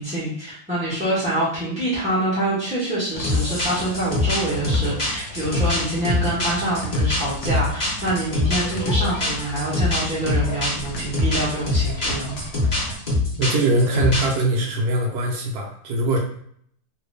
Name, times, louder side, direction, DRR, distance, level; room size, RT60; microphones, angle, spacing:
voice 1, 0.0-12.4, right 1 dB, 10° right, -13 dB, 0.5 m, -26 dB
sound 1, 3.1-13.0, equal, 65° left, 1.4 m, -34 dB
sound 2, 3.2-14.4, left 2 dB, 40° left, 0.6 m, -23 dB
voice 2, 13.3-16.2, right 2 dB, 70° right, 0 dB, 0.9 m, -22 dB
3.2 x 2.6 x 3.2 m, 0.66 s
omnidirectional pair, 2.3 m